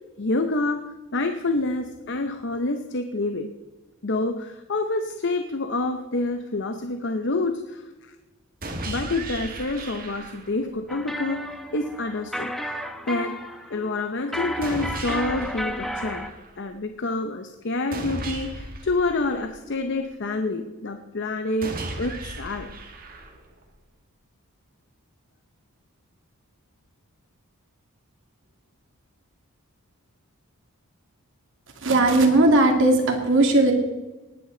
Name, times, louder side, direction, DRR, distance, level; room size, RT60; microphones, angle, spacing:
voice 1, 0.2-3.5 4.0-8.1 8.9-12.8 13.1-13.4 13.7-16.3 16.6-22.7, left 2 dB, 55° left, 7 dB, 0.8 m, -28 dB
sound 1, 8.6-10.6 14.6-16.6 17.9-19.9 21.6-23.6, right 2 dB, 40° right, 1.7 m, -36 dB
sound 2, 10.9-16.3, equal, ahead, 0.8 m, -33 dB
voice 2, 31.8-33.7, right 2 dB, 55° right, 3 dB, 2.2 m, -18 dB
19.0 x 9.8 x 3.9 m, 1.1 s
head